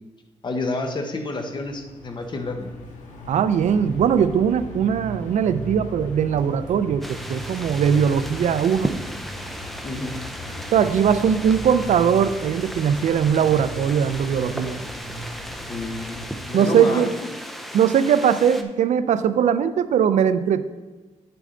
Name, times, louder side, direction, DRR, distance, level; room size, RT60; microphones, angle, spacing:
voice 1, 0.4-2.7 9.8-10.2 15.7-17.1, left 2 dB, 35° left, 5 dB, 1.0 m, -29 dB
sound 1, 1.5-16.3, equal, 90° left, 1.5 m, -37 dB
voice 2, 3.3-9.0 10.7-14.8 16.5-17.1 17.7-20.6, right 8 dB, 70° right, 13 dB, 0.4 m, -20 dB
sound 2, 7.0-18.6, equal, ahead, 0.6 m, -35 dB
9.4 x 6.8 x 3.8 m, 1.3 s
cardioid pair, 125°, 13 cm